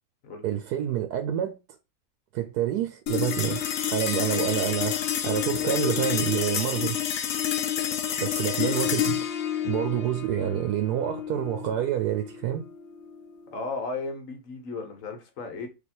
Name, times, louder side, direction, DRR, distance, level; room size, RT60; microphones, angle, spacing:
voice 1, 0.4-1.6 2.3-3.6 3.9-7.0 8.2-9.2 9.6-12.6, right 11 dB, 85° right, 1.1 m, -28 dB
sound 1, 3.1-13.7, left 9 dB, 85° left, 0.5 m, -29 dB
voice 2, 5.5-6.0 13.5-15.7, left 3 dB, 60° left, 1.2 m, -35 dB
3.3 x 2.8 x 4.2 m
omnidirectional pair, 1.6 m